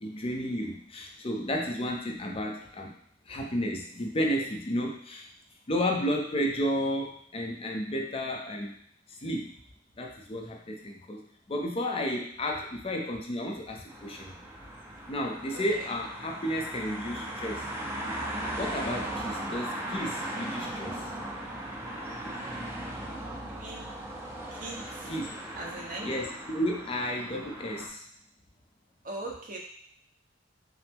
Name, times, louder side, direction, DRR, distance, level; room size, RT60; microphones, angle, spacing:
voice 1, 0.0-3.0 3.3-5.3 5.7-8.8 9.1-9.6 10.0-14.4 15.1-17.7 18.6-21.0 25.1-25.3 26.0-28.0, equal, 30° left, 1 dB, 0.5 m, -32 dB
sound 1, 13.9-27.9, right 1 dB, 15° right, 0.6 m, -38 dB
voice 2, 15.5-15.9 23.5-23.8 24.5-25.1 25.5-26.1 29.0-29.6, right 2 dB, 45° right, -2 dB, 0.9 m, -40 dB
5.5 x 2.0 x 3.6 m, 0.65 s
head